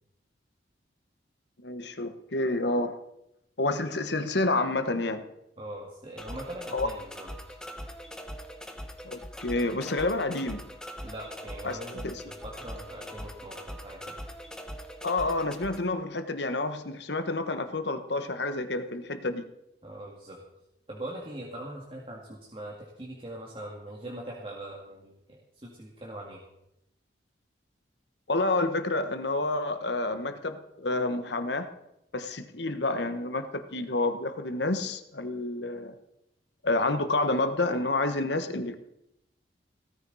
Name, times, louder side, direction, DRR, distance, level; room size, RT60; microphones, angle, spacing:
voice 1, 1.6-3.0 3.6-5.3 6.7-6.9 9.0-10.7 11.6-11.8 12.0-12.1 15.0-19.4 28.3-31.7 32.1-36.0 36.6-38.8, left 2 dB, 70° left, 9 dB, 1.3 m, -29 dB
voice 2, 5.6-7.6 11.0-14.1 19.8-20.4 20.9-26.4, right 1 dB, 30° right, -3 dB, 2.1 m, -41 dB
sound 1, 6.2-15.8, equal, 5° left, 1.1 m, -42 dB
17.0 x 14.5 x 4.1 m, 0.85 s
head